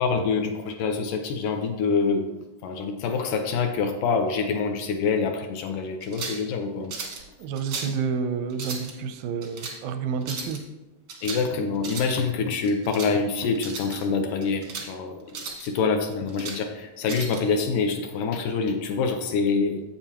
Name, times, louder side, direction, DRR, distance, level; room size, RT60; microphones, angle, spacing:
voice 1, 0.0-6.9 11.2-15.2 15.6-19.8, left 4 dB, 80° left, 5 dB, 2.0 m, -26 dB
sound 1, 6.0-6.5 6.9-7.2 7.6-8.0 8.5-8.9 9.4-9.8 10.2-10.6 11.1-11.5 11.8-12.2 12.6-13.1 13.6-14.0 14.4-14.9 15.3-15.7 16.1-16.6 17.1-17.4, right 4 dB, 70° right, 1.2 m, -36 dB
voice 2, 7.4-10.6, right 6 dB, 85° right, 9 dB, 2.4 m, -29 dB
8.9 x 8.1 x 2.9 m, 1.1 s
omnidirectional pair, 4.1 m